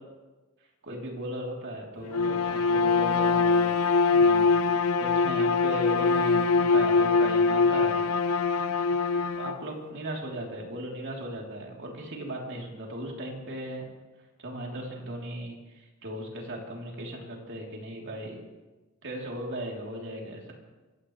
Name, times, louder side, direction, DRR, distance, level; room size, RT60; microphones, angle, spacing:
voice 1, 0.8-3.7 4.1-8.0 9.3-13.8 14.4-15.6 16.0-18.4 19.0-20.5, right 1 dB, 55° right, -1 dB, 3.4 m, -37 dB
Bowed string instrument, 2.1-9.6, left 4 dB, 75° left, 0.8 m, -23 dB
24.5 x 16.5 x 3.3 m, 1.2 s
head